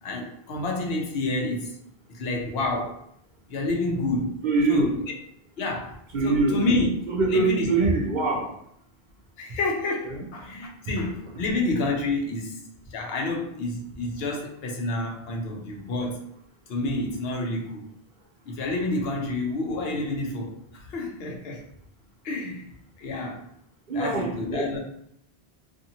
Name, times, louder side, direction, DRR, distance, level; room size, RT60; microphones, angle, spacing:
voice 1, 0.0-1.8 2.1-3.0 3.5-4.4 4.7-5.0 5.6-6.9 7.3-7.9 9.4-16.2 16.7-17.9 18.5-21.6 22.2-22.7 23.0-23.4 23.9-24.8, left 2 dB, 70° left, 0 dB, 0.8 m, -29 dB
voice 2, 4.4-4.9 6.1-6.6 7.1-8.5 10.1-10.2 23.9-24.7, right 3 dB, 55° right, -2 dB, 0.7 m, -23 dB
2.7 x 2.5 x 2.7 m, 0.70 s
omnidirectional pair, 1.1 m